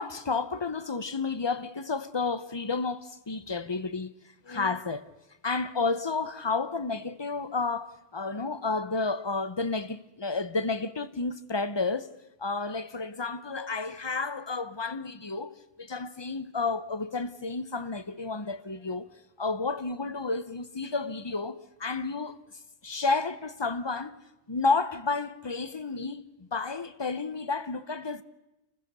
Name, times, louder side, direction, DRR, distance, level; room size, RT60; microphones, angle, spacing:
voice 1, 0.0-4.1 4.4-5.1 5.4-12.1 12.4-19.1 19.4-22.4 22.8-24.2 24.5-28.2, left 4 dB, 25° left, 0.7 m, -31 dB
30.0 x 15.5 x 6.7 m
omnidirectional pair, 1.2 m